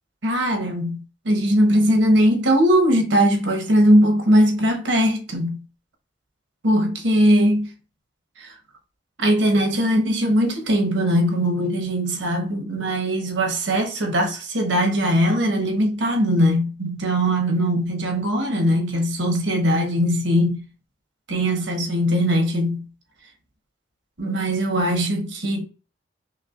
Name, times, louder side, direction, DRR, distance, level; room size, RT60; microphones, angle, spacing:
voice 1, 0.2-1.0 1.2-5.6 6.6-7.7 8.4-8.5 9.2-20.6 21.3-22.9 24.2-25.6, equal, 90° right, 1.1 m, -20 dB
5.4 x 2.2 x 2.5 m
head